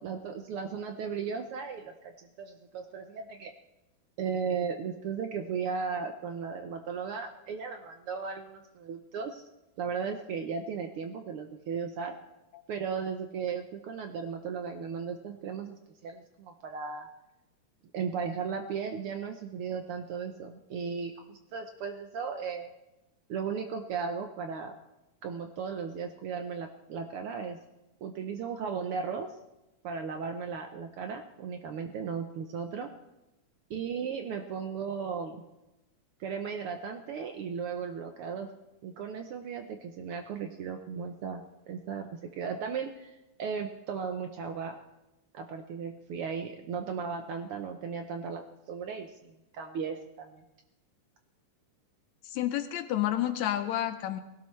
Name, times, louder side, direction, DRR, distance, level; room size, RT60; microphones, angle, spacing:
voice 1, 0.0-3.5 4.2-9.4 9.8-12.1 12.7-15.8 16.0-17.1 17.9-22.7 23.3-24.8 25.2-27.6 28.0-29.3 29.8-32.9 33.7-35.4 36.2-38.5 38.8-44.8 45.3-50.4, right 6 dB, 80° right, 5 dB, 1.2 m, -36 dB
voice 2, 52.2-54.2, left 12 dB, 75° left, 9 dB, 1.9 m, -30 dB
20.0 x 17.0 x 3.2 m, 0.95 s
omnidirectional pair, 3.5 m